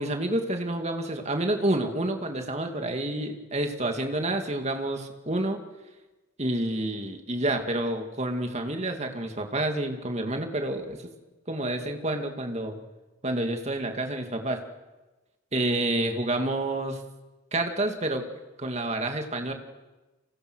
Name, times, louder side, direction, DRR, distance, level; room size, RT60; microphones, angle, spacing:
voice 1, 0.0-5.6 6.4-11.1 11.5-12.8 13.2-14.6 15.5-17.0 17.5-18.2 18.6-19.5, right 1 dB, 35° right, 5 dB, 2.4 m, -29 dB
29.0 x 25.5 x 6.4 m, 1.2 s
head